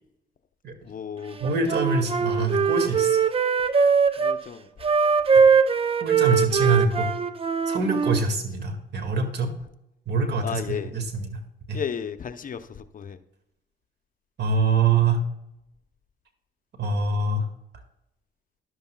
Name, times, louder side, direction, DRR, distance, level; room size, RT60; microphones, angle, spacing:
voice 1, 0.9-1.4 4.2-4.7 10.4-10.9 11.7-12.6 12.9-13.2, left 7 dB, 45° left, 9 dB, 0.7 m, -33 dB
Wind instrument woodwind instrument, 1.4-4.4 4.8-8.2, right 6 dB, 30° right, 0.7 m, -21 dB
voice 2, 1.4-3.2 5.3-5.4 6.0-7.1 7.7-9.5 10.1-11.4 11.7-11.8 14.4-15.2 16.8-17.5, right 4 dB, 60° right, 5 dB, 2.0 m, -24 dB
13.0 x 11.5 x 2.3 m, 0.85 s
cardioid pair, 90°, 20 cm